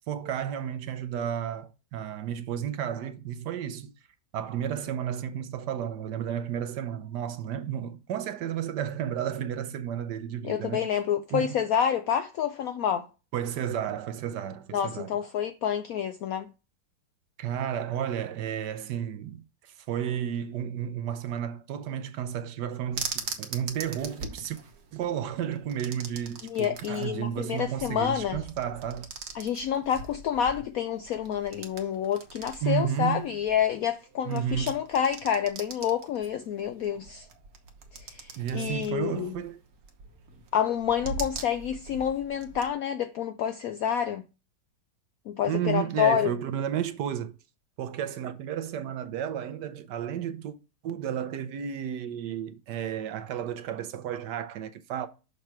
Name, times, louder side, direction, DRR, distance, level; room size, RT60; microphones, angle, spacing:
voice 1, 0.1-3.9 4.3-10.9 11.3-11.6 13.3-15.1 17.4-24.6 24.9-29.1 32.6-33.3 34.3-34.8 38.4-39.6 45.5-47.3 47.8-50.6 50.8-55.1, right 9 dB, 75° right, 1.2 m, -32 dB
voice 2, 10.4-13.1 14.7-16.5 26.4-28.4 29.3-37.3 37.9-39.4 40.5-44.2 45.3-46.3, left 9 dB, 75° left, 0.8 m, -28 dB
sound 1, 22.9-42.7, right 4 dB, 55° right, 1.4 m, -42 dB
6.6 x 3.2 x 5.7 m
omnidirectional pair, 2.0 m